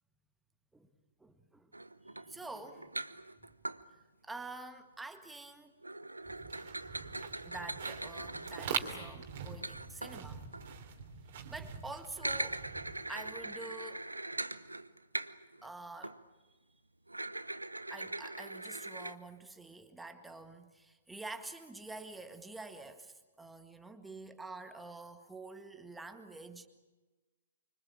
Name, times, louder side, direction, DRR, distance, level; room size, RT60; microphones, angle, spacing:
voice 1, 1.2-1.7 2.0-2.9 3.9-5.7 7.4-10.4 11.5-12.7 13.1-14.1 15.6-16.2 16.5-16.6 17.9-26.7, right 2 dB, 5° right, 1.8 m, -47 dB
sound 1, 1.7-3.8 5.8-10.8 12.1-15.7 16.0-16.2 17.1-19.2, right 2 dB, 85° right, 0.9 m, -41 dB
sound 2, 6.3-13.5, right 7 dB, 45° right, 3.1 m, -43 dB
25.0 x 25.0 x 8.7 m
figure-of-eight pair, 120°, 0 cm